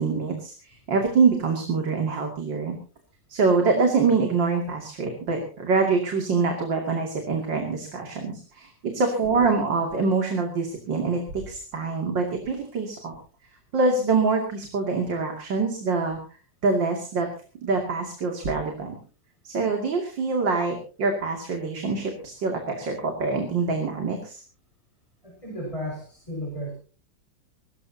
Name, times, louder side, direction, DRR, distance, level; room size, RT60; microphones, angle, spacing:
voice 1, 0.0-2.8 3.3-13.1 13.7-16.2 16.6-17.3 17.6-19.0 19.4-24.4, right 4 dB, 85° right, 2 dB, 3.3 m, -25 dB
voice 2, 25.2-26.7, equal, 15° left, -1 dB, 5.7 m, -34 dB
22.5 x 18.5 x 2.8 m, 0.38 s
omnidirectional pair, 1.9 m